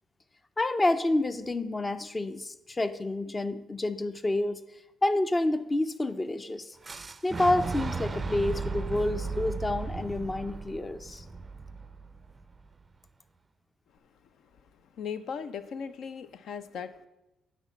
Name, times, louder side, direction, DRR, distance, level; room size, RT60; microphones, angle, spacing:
voice 1, 0.6-4.6 5.0-6.8 7.2-11.2, left 2 dB, 20° left, 12 dB, 0.5 m, -28 dB
Fire / Explosion, 6.8-12.7, right 4 dB, 30° right, 0.4 m, -36 dB
voice 2, 15.0-17.1, left 6 dB, 70° left, 11 dB, 0.5 m, -38 dB
10.0 x 4.1 x 7.2 m, 0.96 s
cardioid pair, 90°, 0 cm